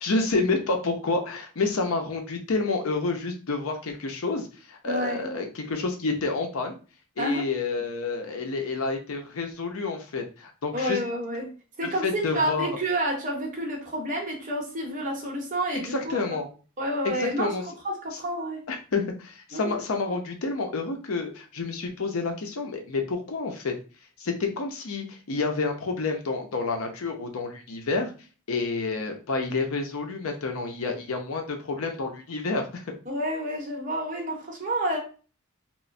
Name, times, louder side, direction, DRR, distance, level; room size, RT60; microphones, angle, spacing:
voice 1, 0.0-6.8 7.2-11.0 11.8-12.8 15.9-16.5 17.0-17.6 18.7-23.7 24.2-28.1 28.5-32.9, left 3 dB, 70° left, 4 dB, 0.5 m, -29 dB
voice 2, 4.9-5.3 7.2-7.4 10.7-11.5 11.8-16.2 16.8-17.5 17.8-18.7 19.5-19.7 20.1-20.2 33.1-35.0, right 1 dB, 35° right, -1 dB, 0.9 m, -29 dB
3.0 x 2.0 x 2.5 m, 0.36 s
head